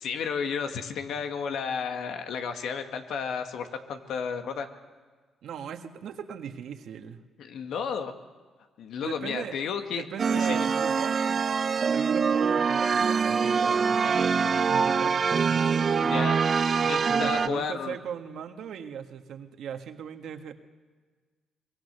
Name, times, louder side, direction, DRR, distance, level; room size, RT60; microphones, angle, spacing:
voice 1, 0.0-4.7 7.4-8.1 8.8-10.6 16.0-16.4 16.8-18.0, left 6 dB, 75° left, 6 dB, 1.8 m, -32 dB
voice 2, 5.4-7.2 9.0-11.5 11.8-15.6 17.1-20.5, right 8 dB, 70° right, 6 dB, 1.6 m, -38 dB
sound 1, 10.2-17.5, right 5 dB, 45° right, 0.7 m, -24 dB
24.0 x 22.5 x 6.8 m, 1.4 s
cardioid pair, 90°, 0 cm